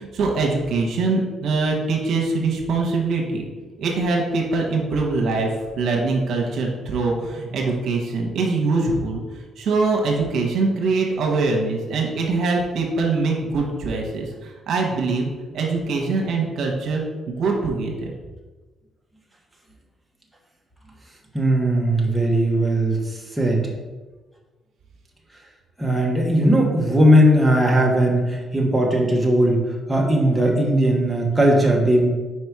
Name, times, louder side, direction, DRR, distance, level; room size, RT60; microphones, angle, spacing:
voice 1, 0.0-3.5 3.8-5.5 5.8-9.2 9.6-18.1, right 3 dB, 70° right, 0 dB, 1.2 m, -23 dB
voice 2, 21.3-23.7 25.8-32.1, right 1 dB, 5° right, -2 dB, 1.3 m, -18 dB
4.8 x 4.4 x 4.8 m, 1.3 s
cardioid pair, 90°, 0 cm